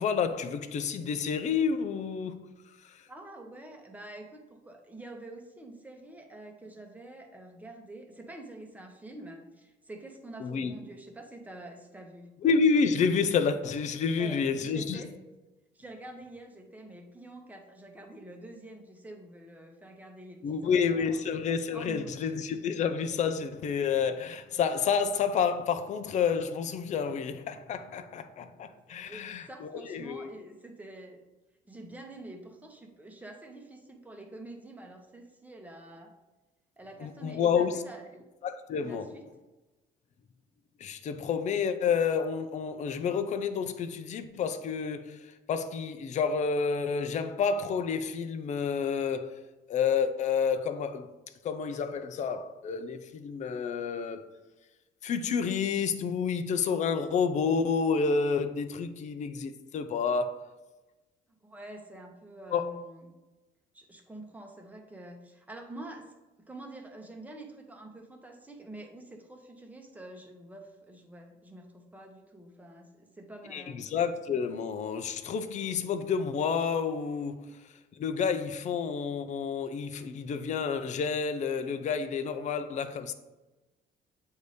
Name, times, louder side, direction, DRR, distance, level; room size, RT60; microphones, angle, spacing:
voice 1, 0.0-2.4 2.8-3.0 10.4-10.7 12.4-15.0 20.4-30.3 37.0-37.8 38.4-39.1 40.8-49.4 49.7-51.1 51.4-54.2 55.0-60.4 62.5-62.7 73.5-77.6 78.0-83.1, left 6 dB, 45° left, 0.5 m, -29 dB
voice 2, 3.1-12.3 14.2-15.1 15.7-21.2 21.7-22.3 28.5-28.7 29.0-31.2 31.7-36.1 36.8-38.2 38.8-39.3 61.4-63.1 63.7-66.1 66.4-73.9, right 1 dB, 10° right, 0.9 m, -47 dB
7.9 x 2.7 x 5.0 m
cardioid pair, 110°, 17 cm